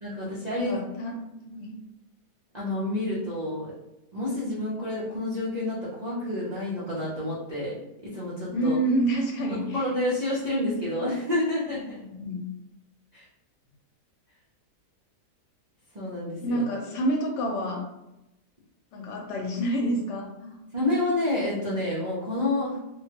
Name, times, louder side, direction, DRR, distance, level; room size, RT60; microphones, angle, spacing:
voice 1, 0.0-0.7 2.5-3.7 4.1-8.8 9.5-12.0 13.1-13.2 15.9-16.6 20.7-22.8, left 1 dB, 70° right, -9 dB, 0.4 m, -29 dB
voice 2, 0.6-1.7 8.5-9.9 12.0-12.5 16.4-17.8 18.9-20.6, right 1 dB, 85° left, 0 dB, 1.2 m, -28 dB
3.0 x 2.2 x 2.8 m, 0.91 s
omnidirectional pair, 1.8 m